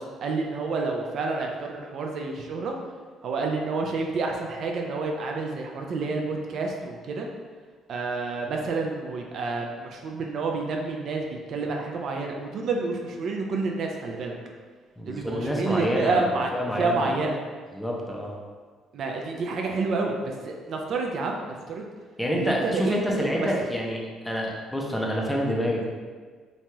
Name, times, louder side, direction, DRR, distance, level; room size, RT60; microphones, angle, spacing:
voice 1, 0.0-2.8 3.2-7.3 7.9-14.4 15.0-16.5 16.8-17.4 18.9-21.9 22.3-23.5, right 3 dB, 60° right, 1 dB, 0.3 m, -29 dB
voice 2, 15.0-17.1 17.7-18.4 22.2-25.8, equal, 5° left, -2 dB, 0.4 m, -27 dB
3.0 x 2.7 x 2.2 m, 1.5 s
cardioid pair, 105°, 0 cm